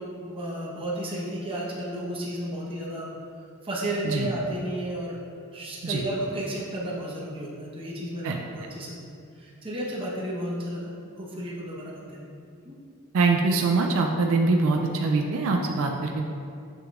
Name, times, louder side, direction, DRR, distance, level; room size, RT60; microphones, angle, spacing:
voice 1, 0.0-3.1 3.6-5.2 5.5-9.1 9.4-10.9 11.2-12.3 12.6-12.8, right 1 dB, 25° right, -5 dB, 1.0 m, -33 dB
voice 2, 13.1-16.3, right 3 dB, 65° right, 2 dB, 0.4 m, -23 dB
6.9 x 5.8 x 2.4 m, 2.4 s
head